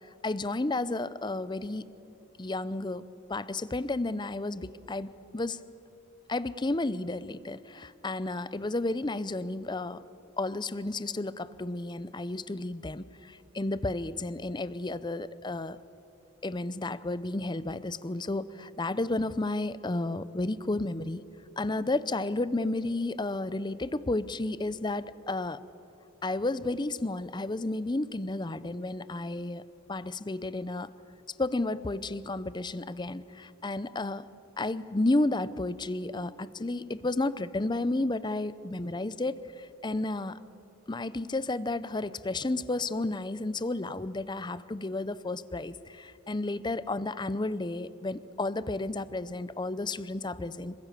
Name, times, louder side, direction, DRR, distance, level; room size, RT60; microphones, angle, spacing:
voice 1, 0.2-1.9 2.4-5.6 6.3-10.0 10.4-15.8 16.4-21.2 21.6-25.6 26.2-29.6 29.9-30.9 31.4-34.2 34.6-40.4 40.9-50.7, left 2 dB, 20° left, 16 dB, 0.6 m, -32 dB
26.5 x 24.0 x 6.8 m, 2.8 s
head